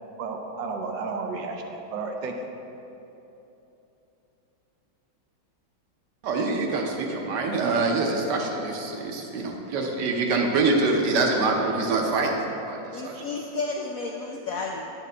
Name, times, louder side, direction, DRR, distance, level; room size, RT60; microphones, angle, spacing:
voice 1, 0.2-2.5, right 4 dB, 90° right, 3 dB, 1.4 m, -32 dB
voice 2, 6.2-12.3 12.7-13.2, right 3 dB, 70° right, 1 dB, 1.4 m, -25 dB
voice 3, 12.9-14.8, left 3 dB, 80° left, 0 dB, 0.7 m, -32 dB
8.7 x 6.5 x 3.3 m, 3.0 s
omnidirectional pair, 2.0 m